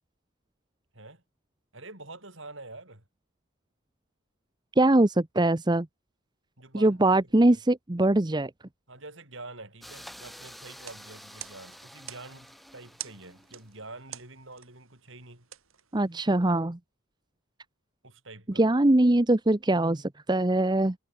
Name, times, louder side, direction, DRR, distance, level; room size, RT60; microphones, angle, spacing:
voice 1, 1.7-3.0 6.6-7.6 8.9-15.5 18.0-18.7, right 2 dB, 60° right, 7.3 m, -46 dB
voice 2, 4.8-5.9 6.7-8.5 15.9-16.8 18.6-20.9, right 1 dB, 20° right, 0.7 m, -22 dB
sound 1, 9.8-13.8, equal, ahead, 6.2 m, -49 dB
sound 2, 10.8-16.5, right 12 dB, 75° right, 4.5 m, -48 dB
head